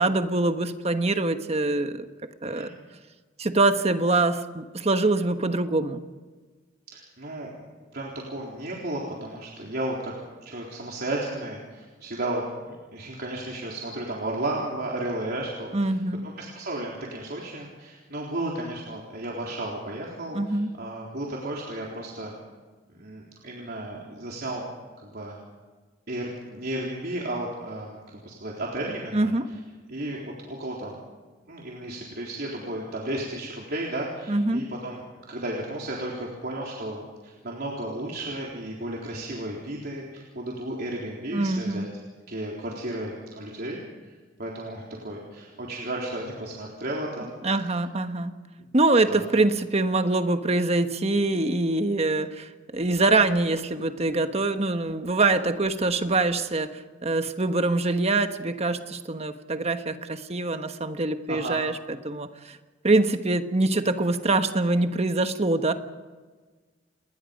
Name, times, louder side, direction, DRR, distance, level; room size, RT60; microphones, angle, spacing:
voice 1, 0.0-2.1 2.4-2.7 3.4-6.0 15.7-16.3 20.3-20.8 29.1-29.5 34.3-34.7 41.3-41.9 47.4-48.4 48.7-62.6 62.8-65.7, right 2 dB, 35° right, 8 dB, 1.3 m, -24 dB
voice 2, 6.9-7.5 7.9-10.1 10.4-15.9 16.4-22.3 22.9-24.7 25.0-25.4 26.1-29.3 29.9-31.0 31.5-35.0 35.3-41.9 42.3-47.3 47.6-47.7 49.1-49.2 52.2-52.3 61.3-61.6, right 1 dB, 55° right, -3 dB, 3.9 m, -33 dB
29.5 x 20.5 x 5.3 m, 1.4 s
head